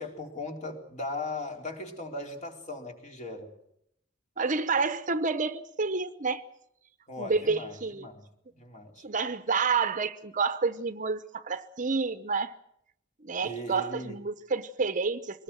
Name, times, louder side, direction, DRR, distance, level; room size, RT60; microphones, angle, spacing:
voice 1, 0.0-3.5 7.1-8.3 8.6-9.0 13.4-14.2, left 2 dB, 40° left, 4.1 m, -38 dB
voice 2, 4.4-6.4 7.2-8.1 9.0-12.5 13.2-15.4, right 4 dB, 40° right, 0.9 m, -29 dB
23.5 x 19.5 x 7.7 m
head